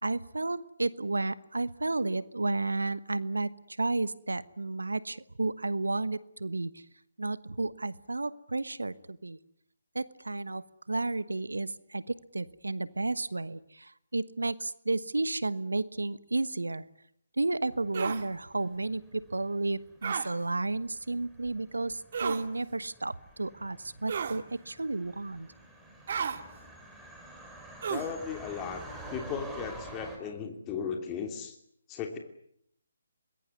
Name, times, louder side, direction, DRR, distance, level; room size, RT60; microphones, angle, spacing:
voice 1, 0.0-6.8 7.2-9.4 9.9-16.8 17.4-25.5, right 2 dB, 80° right, 17 dB, 1.2 m, -32 dB
sound 1, 17.7-30.2, right 1 dB, 5° right, 5.0 m, -49 dB
sound 2, 17.9-18.2 20.0-20.3 22.1-22.4 24.1-24.4 26.1-26.4 27.8-28.1, right 7 dB, 50° right, 2.2 m, -32 dB
voice 2, 27.9-28.8 29.1-31.5 31.9-32.2, left 7 dB, 20° left, 4 dB, 3.0 m, -36 dB
25.0 x 21.0 x 9.7 m, 0.73 s
figure-of-eight pair, 145°, 0 cm